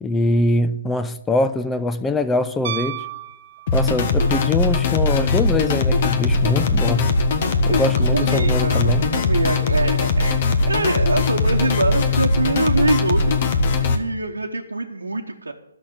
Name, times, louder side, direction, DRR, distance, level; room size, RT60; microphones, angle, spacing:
voice 1, 0.0-3.1 3.7-7.1 7.7-9.0, left 2 dB, 10° left, 0.5 m, -23 dB
Piano, 2.6-4.2 6.6-6.7, right 13 dB, 45° right, 0.9 m, -32 dB
sound 1, 3.7-14.0, left 3 dB, 45° left, 1.4 m, -20 dB
voice 2, 7.7-10.4 10.7-13.4 13.9-15.5, right 3 dB, 90° right, 1.1 m, -24 dB
12.0 x 6.5 x 8.7 m
figure-of-eight pair, 145°, 0 cm